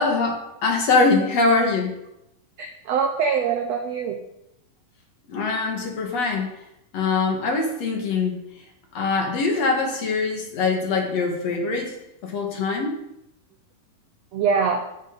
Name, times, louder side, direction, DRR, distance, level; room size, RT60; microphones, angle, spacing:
voice 1, 0.0-2.0 5.3-6.5 6.9-8.4 8.9-11.9 12.2-12.9, left 3 dB, 55° left, 1 dB, 2.6 m, -23 dB
voice 2, 2.6-4.2 14.3-14.8, right 6 dB, 75° right, 4 dB, 1.5 m, -23 dB
14.5 x 6.5 x 5.3 m, 0.84 s
omnidirectional pair, 4.0 m